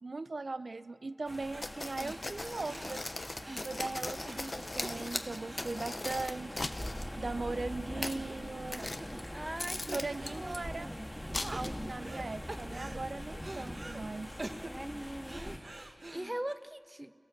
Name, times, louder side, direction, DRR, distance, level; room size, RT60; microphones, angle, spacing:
voice 1, 0.0-3.0 3.6-6.7 7.2-8.9 9.9-10.9 11.3-14.3, right 3 dB, 85° right, 11 dB, 0.5 m, -39 dB
sound 1, 1.3-15.6, equal, 15° left, 2.4 m, -43 dB
sound 2, 1.5-1.7 2.0-7.2 7.5-7.6 8.0-8.5 8.8-9.6 9.9-10.7 11.1-12.2 12.5-14.0 14.4-16.5, right 2 dB, 55° right, 1.2 m, -47 dB
sound 3, 1.6-7.1 7.8-8.2 8.7-9.3 9.6-10.6 11.3-11.9, left 2 dB, 55° left, 0.9 m, -39 dB
voice 2, 9.3-10.0 10.3-11.1 14.6-17.1, right 1 dB, 20° right, 12 dB, 0.7 m, -42 dB
29.5 x 17.0 x 7.4 m, 2.2 s
wide cardioid pair, 55°, 0 cm